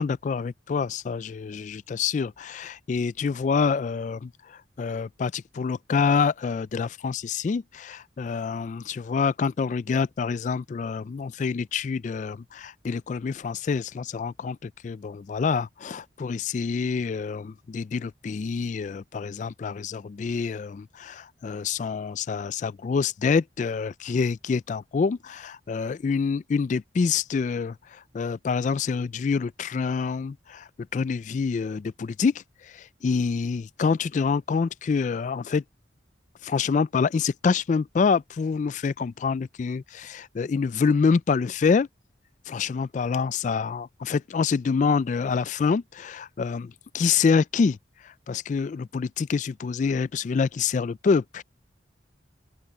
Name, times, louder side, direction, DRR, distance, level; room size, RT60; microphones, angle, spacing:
voice 1, 0.0-35.6 36.4-41.9 42.5-47.8 48.0-51.4, left 5 dB, 40° left, 0.3 m, -26 dB
open air
head